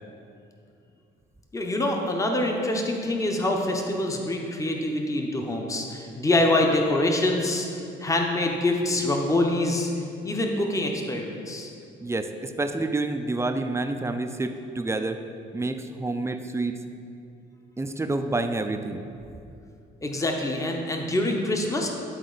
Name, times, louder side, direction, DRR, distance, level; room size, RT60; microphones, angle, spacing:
voice 1, 1.5-9.9 10.2-11.7 20.0-21.9, left 1 dB, 15° left, 1 dB, 0.8 m, -25 dB
voice 2, 12.0-15.2 15.5-16.8 17.8-19.0, right 2 dB, 15° right, 7 dB, 0.4 m, -28 dB
10.5 x 4.1 x 3.9 m, 2.5 s
cardioid pair, 90°, 20 cm